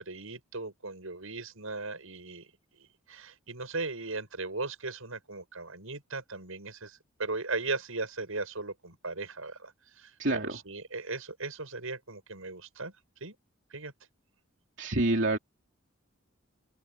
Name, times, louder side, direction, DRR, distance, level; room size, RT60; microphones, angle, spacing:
voice 1, 0.0-2.5 2.8-12.9 13.2-13.4 13.7-13.9, right 3 dB, 85° right, 7.4 m, -38 dB
voice 2, 10.2-10.6 14.8-15.4, right 2 dB, 60° right, 3.0 m, -27 dB
head